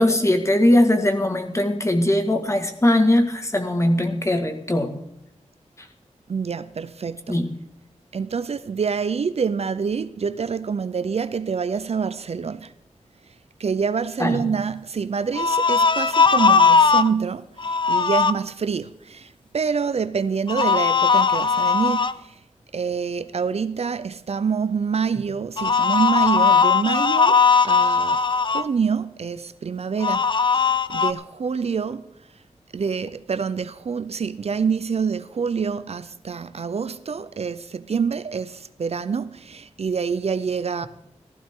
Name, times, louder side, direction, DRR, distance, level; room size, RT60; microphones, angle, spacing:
voice 1, 0.0-5.0 5.8-5.9 7.3-7.5 14.2-14.4, left 1 dB, 25° left, 1.7 m, -20 dB
voice 2, 6.3-7.3 8.1-12.7 13.3-13.4 13.6-22.4 22.7-32.1 32.7-40.9, right 6 dB, 60° right, 0.5 m, -26 dB
sound 1, 15.3-17.1 17.6-18.3 20.5-22.1 25.6-28.6 30.0-31.1, left 5 dB, 40° left, 0.5 m, -18 dB
15.5 x 14.5 x 3.7 m
wide cardioid pair, 100°, 12 cm